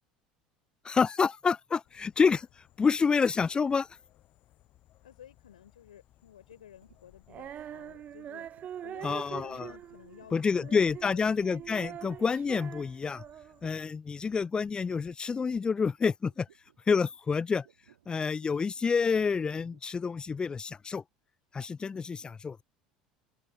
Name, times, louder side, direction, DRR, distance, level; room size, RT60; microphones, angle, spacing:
voice 1, 0.8-2.5 2.8-3.9 9.0-9.7 10.3-13.2 13.6-16.5 16.9-17.7 18.1-21.0 21.5-22.6, left 5 dB, 20° left, 0.3 m, -28 dB
sound 1, 1.8-13.8, left 15 dB, 50° left, 6.1 m, -63 dB
voice 2, 5.0-8.5 8.8-11.4, left 10 dB, 80° left, 4.0 m, -53 dB
sound 2, 6.5-12.8 13.6-14.0 14.3-20.0, right 11 dB, 80° right, 2.1 m, -62 dB
Female singing, 7.3-13.7, right 10 dB, 40° right, 0.6 m, -44 dB
open air
hypercardioid pair, 70°, 4 cm